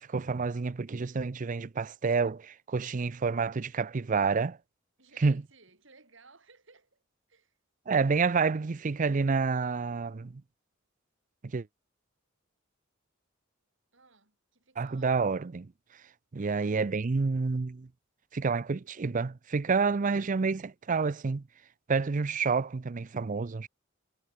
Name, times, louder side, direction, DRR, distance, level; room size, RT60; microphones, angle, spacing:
voice 1, 0.0-4.6 5.2-5.4 7.9-10.4 11.5-11.7 14.8-15.7 16.3-17.9 18.3-21.4 21.9-23.7, right 4 dB, 40° right, 0.5 m, -29 dB
voice 2, 5.0-7.0 7.3-7.6 13.9-15.2 19.6-19.8, right 4 dB, 65° right, 6.3 m, -59 dB
head